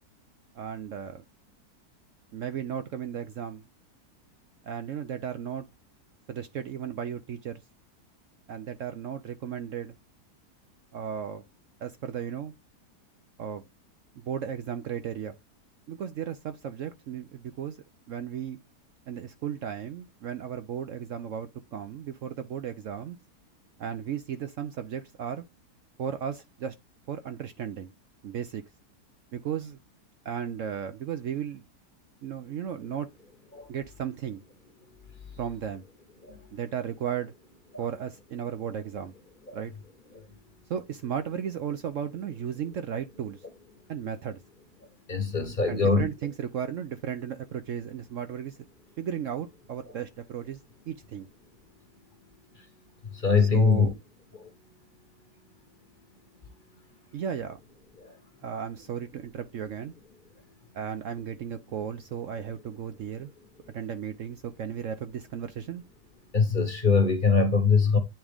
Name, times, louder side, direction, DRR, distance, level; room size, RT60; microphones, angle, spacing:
voice 1, 0.5-1.2 2.3-3.6 4.6-5.6 6.3-7.6 8.5-9.9 10.9-11.4 11.8-12.5 13.4-13.6 14.2-15.4 15.9-17.8 18.1-18.6 19.1-23.2 23.8-25.4 26.0-26.7 27.1-27.9 28.2-28.6 29.3-29.8 30.2-31.6 32.2-33.1 33.7-34.4 35.4-35.9 36.5-37.3 37.8-39.1 39.5-39.7 40.7-43.4 43.9-44.4 45.7-48.6 49.0-50.6 50.9-51.3 53.4-53.9 57.1-57.6 58.4-59.9 60.7-63.3 63.7-65.8, right 8 dB, 65° right, 0.9 m, -35 dB
voice 2, 45.1-46.0 53.1-53.9 54.4-54.5 58.0-58.1 66.3-68.0, left 4 dB, 35° left, 1.0 m, -23 dB
8.9 x 3.6 x 3.4 m
omnidirectional pair, 1.7 m